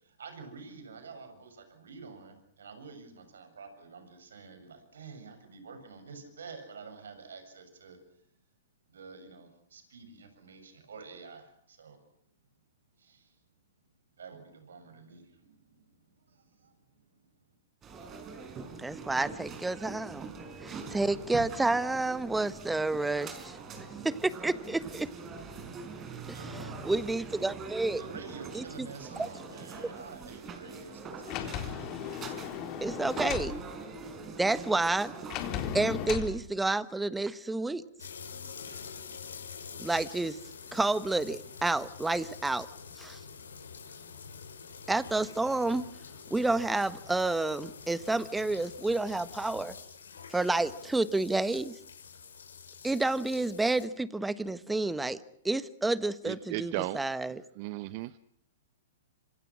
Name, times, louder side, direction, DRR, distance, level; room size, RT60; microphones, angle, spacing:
voice 1, 0.0-8.0 8.9-12.0 13.0-13.4 14.2-17.3 26.3-26.6 28.0-31.9, right 5 dB, 80° right, 8 dB, 7.4 m, -49 dB
sound 1, 17.8-35.8, right 4 dB, 25° right, 5.0 m, -43 dB
voice 2, 18.8-20.3 20.6-23.6 24.0-25.1 26.3-26.4 26.8-28.0 28.5-28.9 29.2-29.3 32.8-33.6 34.4-35.1 35.7-37.8 39.8-40.4 40.7-42.7 43.0-43.2 44.9-45.8 46.3-49.7 50.3-51.7 52.8-55.2 55.4-57.4, right 2 dB, 5° right, 15 dB, 1.3 m, -30 dB
Sliding door, 31.3-33.5 35.3-36.3, left 9 dB, 40° left, 4.1 m, -36 dB
sound 2, 38.0-53.8, left 6 dB, 85° left, 6.4 m, -47 dB
voice 3, 56.2-57.0 57.6-58.2, right 17 dB, 45° right, 15 dB, 0.9 m, -35 dB
27.0 x 26.5 x 6.3 m, 0.67 s
hypercardioid pair, 120°, 0 cm